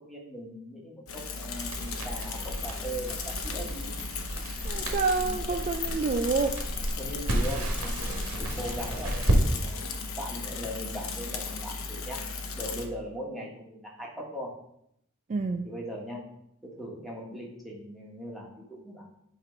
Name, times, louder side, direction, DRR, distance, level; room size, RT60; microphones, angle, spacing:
voice 1, 0.0-4.0 7.0-9.8 10.2-12.2 12.5-14.5 15.6-16.3 16.6-19.0, equal, ahead, -3 dB, 1.4 m, -39 dB
Bicycle / Mechanisms, 1.1-12.9, left 4 dB, 75° left, 0.8 m, -36 dB
Crackle, 1.5-9.4, right 1 dB, 80° right, 1.3 m, -32 dB
voice 2, 4.6-6.6 15.3-15.7, right 4 dB, 35° right, 5 dB, 0.3 m, -28 dB
8.6 x 3.0 x 5.1 m, 0.76 s
head